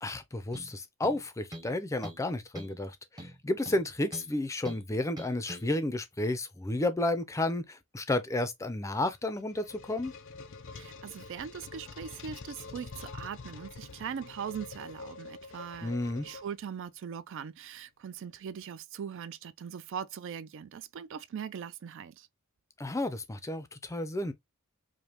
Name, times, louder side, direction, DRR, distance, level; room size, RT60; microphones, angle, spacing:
voice 1, 0.0-10.1 15.8-16.3 22.8-24.3, left 2 dB, 15° left, 0.5 m, -32 dB
sound 1, 0.5-0.7 1.0-1.8 2.0-2.3 2.6-2.8 3.2-4.3 4.7-4.8 5.2-5.7, equal, 20° right, 0.8 m, -44 dB
sound 2, 9.1-16.9, left 4 dB, 60° left, 0.6 m, -46 dB
voice 2, 10.7-15.9 16.2-22.3, right 7 dB, 55° right, 0.3 m, -40 dB
5.0 x 2.1 x 2.9 m
head